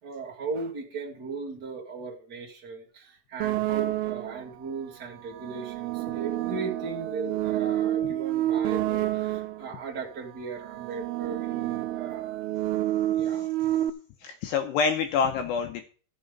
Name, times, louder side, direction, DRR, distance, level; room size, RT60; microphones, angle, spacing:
voice 1, 0.0-12.4 13.1-13.5, right 4 dB, 45° right, -1 dB, 1.2 m, -37 dB
sound 1, 3.4-4.5 5.3-9.7 10.5-13.9, right 14 dB, 85° right, 3.2 m, -29 dB
voice 2, 14.2-15.8, left 5 dB, 75° left, 5 dB, 2.6 m, -26 dB
13.0 x 6.8 x 5.3 m, 0.40 s
omnidirectional pair, 5.8 m